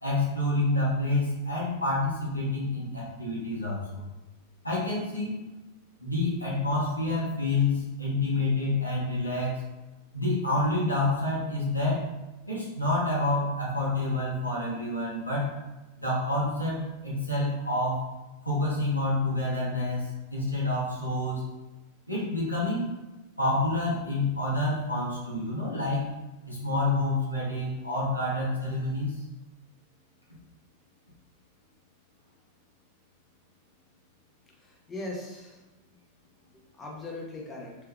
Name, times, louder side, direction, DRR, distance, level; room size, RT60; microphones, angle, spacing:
voice 1, 0.0-4.0 4.6-5.4 6.0-9.6 10.1-12.1 12.5-15.6 16.0-18.0 18.4-21.4 22.1-22.9 23.4-26.1 26.4-29.2, left 2 dB, 85° left, -6 dB, 1.0 m, -28 dB
voice 2, 34.5-35.6 36.5-37.8, left 2 dB, 20° left, -2 dB, 0.9 m, -40 dB
3.4 x 3.3 x 2.3 m, 1.1 s
figure-of-eight pair, 90°, 0 cm